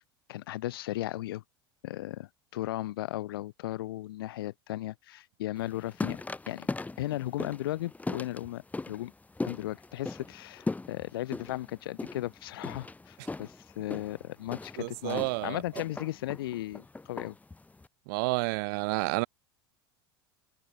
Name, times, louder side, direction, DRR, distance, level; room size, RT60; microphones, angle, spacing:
voice 1, 0.3-1.4 1.8-6.2 6.5-6.7 7.0-9.1 9.4-17.4, left 15 dB, 70° left, 2.5 m, -36 dB
sound 1, 5.6-17.9, left 3 dB, 10° left, 2.7 m, -39 dB
voice 2, 14.8-15.6 18.1-19.3, right 28 dB, 60° right, 1.3 m, -30 dB
figure-of-eight pair, 75°, 13 cm